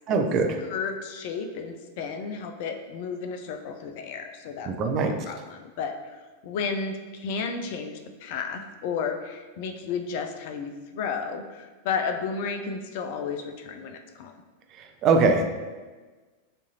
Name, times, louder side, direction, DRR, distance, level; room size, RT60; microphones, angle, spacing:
voice 1, 0.1-0.6 4.7-5.1 14.8-15.5, right 4 dB, 35° right, 4 dB, 0.5 m, -22 dB
voice 2, 0.7-14.3, left 5 dB, 50° left, 6 dB, 0.5 m, -33 dB
7.2 x 2.6 x 2.8 m, 1.3 s
figure-of-eight pair, 90°, 0 cm